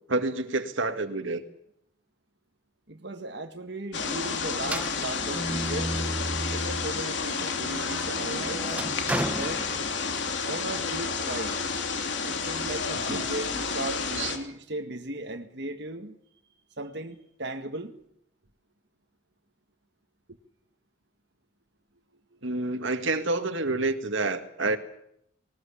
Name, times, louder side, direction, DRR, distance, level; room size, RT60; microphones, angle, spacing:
voice 1, 0.1-1.4 7.4-7.5 13.1-13.3 14.2-14.3 22.4-24.8, right 2 dB, 70° right, 8 dB, 2.0 m, -28 dB
voice 2, 2.9-6.0 6.5-8.7 9.0-9.6 10.5-11.6 12.2-16.2 16.8-17.9, right 2 dB, 55° right, 5 dB, 1.8 m, -37 dB
sound 1, 3.9-14.4, left 4 dB, 65° left, 3.1 m, -30 dB
sound 2, 4.6-7.0 7.5-10.3, right 1 dB, 5° right, 1.1 m, -34 dB
21.0 x 19.5 x 8.6 m, 0.73 s
head